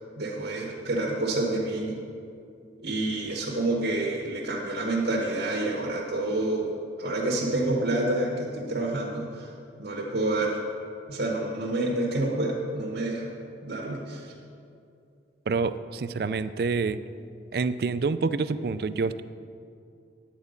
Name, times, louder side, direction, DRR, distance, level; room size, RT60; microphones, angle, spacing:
voice 1, 0.2-2.0 2.8-6.7 7.0-9.5 9.8-10.6 11.1-13.3 13.6-14.3, right 2 dB, 75° right, -4 dB, 1.4 m, -28 dB
voice 2, 15.5-17.0 17.5-19.2, right 4 dB, 60° right, 13 dB, 0.3 m, -27 dB
10.0 x 8.0 x 5.2 m, 2.5 s
head